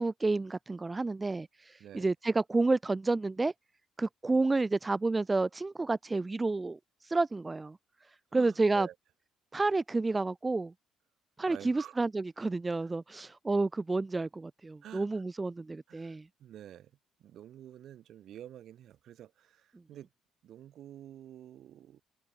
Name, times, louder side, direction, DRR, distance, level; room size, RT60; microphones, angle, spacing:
voice 1, 0.0-3.5 4.0-7.8 8.3-8.9 9.5-10.7 11.4-16.3, right 3 dB, 20° right, 0.6 m, -30 dB
voice 2, 8.3-8.9 11.5-12.0 12.8-13.3 14.8-15.2 15.9-16.9 17.2-20.1 20.4-22.0, right 11 dB, 65° right, 2.4 m, -49 dB
open air
supercardioid pair, 70°, 0 cm